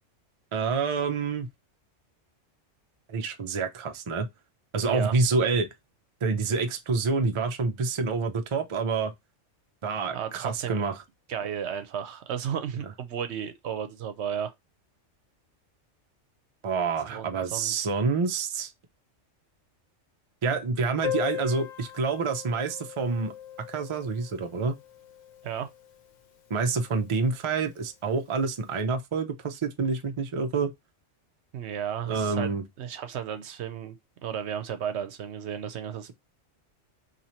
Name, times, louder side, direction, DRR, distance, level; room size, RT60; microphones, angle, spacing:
voice 1, 0.5-1.5 3.1-4.3 4.7-5.7 6.2-9.1 9.8-11.0 16.6-18.7 20.4-23.3 23.7-24.8 26.5-30.7 32.1-32.6, right 4 dB, 50° right, 0.3 m, -27 dB
voice 2, 4.8-5.1 7.2-7.3 10.1-10.8 11.3-14.5 17.1-17.9 25.4-25.7 31.5-32.5 32.8-34.0 34.2-36.2, right 8 dB, 70° right, 0.9 m, -34 dB
Piano, 21.0-26.4 26.7-26.8 27.0-27.1 27.5-27.6 28.3-28.5, left 10 dB, 50° left, 0.6 m, -38 dB
2.8 x 2.8 x 4.2 m
omnidirectional pair, 1.3 m